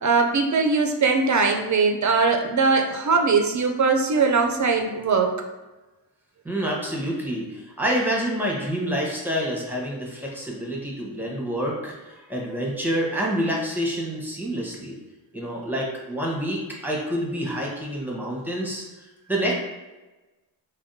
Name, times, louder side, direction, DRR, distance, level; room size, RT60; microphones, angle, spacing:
voice 1, 0.0-5.3, right 4 dB, 40° right, 4 dB, 0.4 m, -21 dB
voice 2, 6.4-15.0 15.3-18.8 19.3-19.5, equal, 5° right, -3 dB, 0.9 m, -27 dB
3.5 x 2.2 x 2.6 m, 1.1 s
cardioid pair, 60°, 45 cm